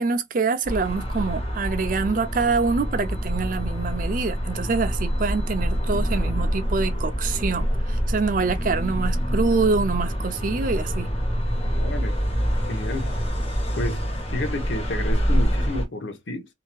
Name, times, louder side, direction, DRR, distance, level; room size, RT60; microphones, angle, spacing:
voice 1, 0.0-11.1, right 4 dB, 45° right, 0.5 m, -25 dB
sound 1, 0.6-15.9, equal, 30° left, 1.0 m, -26 dB
voice 2, 11.7-12.2 12.7-13.1 13.8-14.0 14.3-16.5, left 1 dB, 75° left, 0.8 m, -30 dB
2.7 x 2.7 x 2.2 m
head